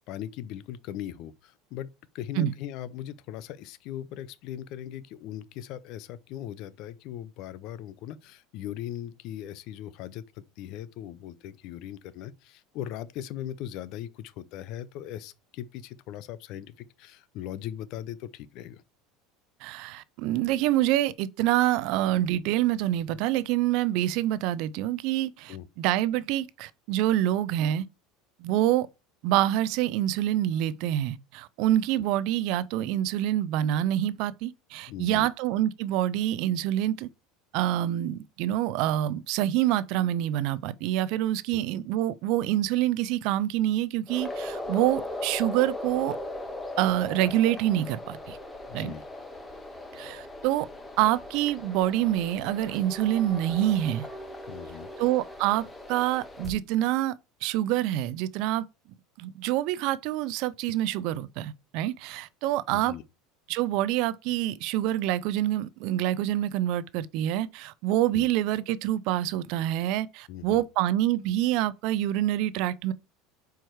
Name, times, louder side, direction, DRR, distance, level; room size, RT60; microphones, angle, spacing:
voice 1, 0.1-1.9 2.1-18.8 25.5-25.7 34.9-35.3 41.5-41.6 48.7-49.0 54.5-54.9 62.7-63.0 68.1-68.3 70.3-70.6, left 11 dB, 60° left, 0.5 m, -39 dB
voice 2, 19.6-27.9 28.4-28.9 29.2-37.1 37.5-46.2 46.8-48.4 48.7-48.9 49.9-50.7 51.0-54.1 55.0-58.6 59.2-63.0 63.5-72.9, right 13 dB, 60° right, 0.4 m, -26 dB
sound 1, 44.1-56.5, left 1 dB, 10° left, 1.3 m, -38 dB
4.7 x 4.5 x 4.6 m
supercardioid pair, 125°, 0 cm